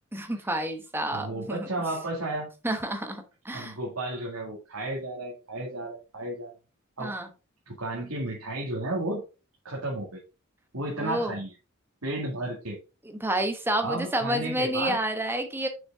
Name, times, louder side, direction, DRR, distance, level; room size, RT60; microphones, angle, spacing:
voice 1, 0.1-1.7 2.6-3.7 7.0-7.3 11.0-11.4 13.2-15.7, right 1 dB, 10° right, 6 dB, 1.1 m, -29 dB
voice 2, 1.1-2.5 3.5-6.5 7.0-7.1 7.7-9.2 9.6-10.2 10.7-11.5 12.0-12.8 13.8-15.0, right 1 dB, 80° right, -3 dB, 2.3 m, -33 dB
6.4 x 6.1 x 3.6 m, 0.31 s
head